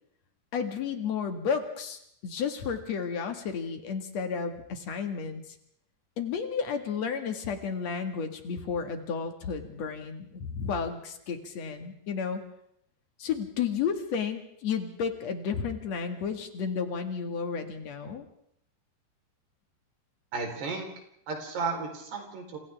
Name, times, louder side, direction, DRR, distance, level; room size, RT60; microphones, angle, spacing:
voice 1, 0.5-5.6 6.2-12.4 13.2-18.2, left 6 dB, 50° left, 5 dB, 2.6 m, -32 dB
voice 2, 20.3-20.9 21.3-22.6, right 4 dB, 80° right, 2 dB, 6.2 m, -33 dB
29.5 x 28.0 x 3.6 m, 0.71 s
omnidirectional pair, 4.7 m